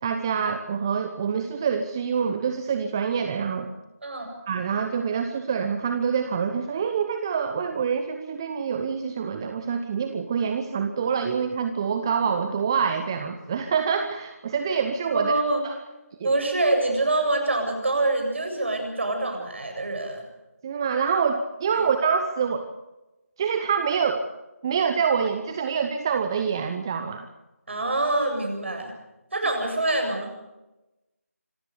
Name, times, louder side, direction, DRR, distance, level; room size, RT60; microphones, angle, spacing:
voice 1, 0.0-3.7 4.5-15.3 15.6-15.7 16.2-16.3 20.6-22.7 23.4-24.2 24.6-27.3, right 6 dB, 15° right, 7 dB, 0.9 m, -26 dB
voice 2, 15.1-15.6 16.2-20.2 21.7-21.9 27.7-28.9 29.3-30.3, right 2 dB, 50° right, 3 dB, 7.8 m, -25 dB
26.0 x 15.0 x 8.2 m, 1.0 s
figure-of-eight pair, 165°, 8 cm